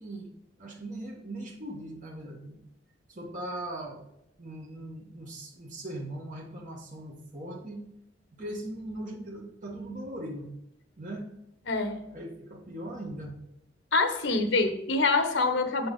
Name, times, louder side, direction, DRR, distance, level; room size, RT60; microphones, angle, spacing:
voice 1, 0.0-2.6 3.1-4.0 4.4-7.8 8.3-10.5 11.0-11.3 12.1-13.4, right 1 dB, 45° right, -3 dB, 1.6 m, -39 dB
voice 2, 11.7-12.1 13.9-15.9, left 3 dB, 75° left, 6 dB, 1.1 m, -25 dB
7.8 x 5.7 x 4.1 m, 0.83 s
head